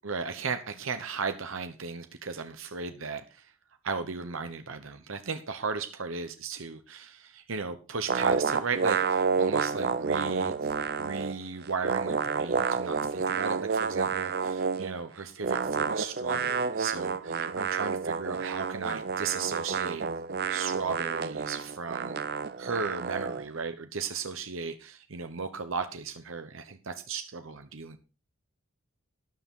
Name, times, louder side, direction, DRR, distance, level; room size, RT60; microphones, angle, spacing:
voice 1, 0.0-3.5 3.8-20.0 20.5-22.2 22.6-28.0, right 5 dB, 70° right, 1.0 m, -36 dB
sound 1, 8.1-11.4 11.6-14.9 15.4-23.4, right 5 dB, 45° right, 0.6 m, -29 dB
13.0 x 9.9 x 3.7 m
head